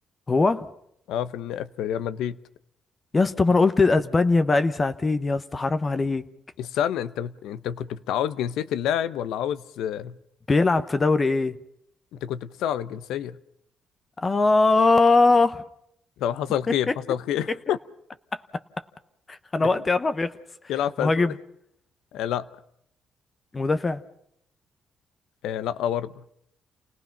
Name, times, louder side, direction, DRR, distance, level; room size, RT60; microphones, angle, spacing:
voice 1, 0.3-0.7 3.1-6.3 10.5-11.6 14.2-15.6 16.9-17.0 18.3-18.4 19.3-20.4 21.0-21.3 23.5-24.0, left 3 dB, 30° left, 1.0 m, -21 dB
voice 2, 1.1-2.4 6.6-10.2 12.1-13.4 16.2-17.8 19.6-19.7 20.7-21.4 22.1-22.5 25.4-26.2, left 10 dB, 90° left, 0.8 m, -28 dB
29.0 x 18.0 x 5.9 m
cardioid pair, 90°, 0 cm